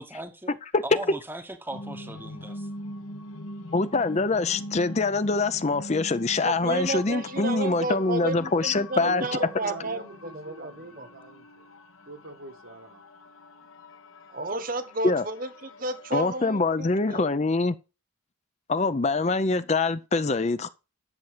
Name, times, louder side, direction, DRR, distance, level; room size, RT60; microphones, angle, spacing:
voice 1, 0.0-0.6 0.8-2.7, right 1 dB, 10° right, 0.9 m, -38 dB
sound 1, 1.7-16.4, left 1 dB, 70° left, 1.3 m, -43 dB
voice 2, 3.7-9.3 15.0-15.2 16.1-17.8 18.7-20.7, left 3 dB, 30° left, 0.5 m, -24 dB
voice 3, 6.4-11.1 14.3-17.3, right 2 dB, 40° right, 1.2 m, -32 dB
voice 4, 9.0-11.7 12.1-13.0, right 2 dB, 75° right, 1.8 m, -44 dB
10.5 x 7.0 x 5.0 m
head